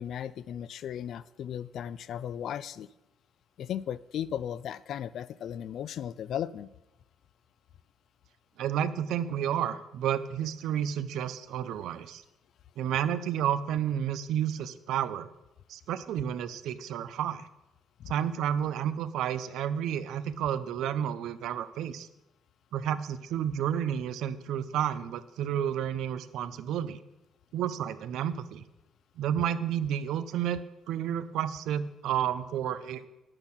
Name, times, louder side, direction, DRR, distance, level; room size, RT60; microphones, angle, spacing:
voice 1, 0.0-2.9 3.6-6.7 18.0-18.1, left 9 dB, 60° left, 18 dB, 0.4 m, -36 dB
voice 2, 8.6-12.2 12.8-15.3 15.7-17.5 18.1-22.1 22.7-27.0 27.5-28.6 29.2-30.6 30.9-33.0, right 9 dB, 80° right, 13 dB, 0.6 m, -31 dB
9.9 x 8.9 x 6.1 m, 0.96 s
cardioid pair, 155°, 0 cm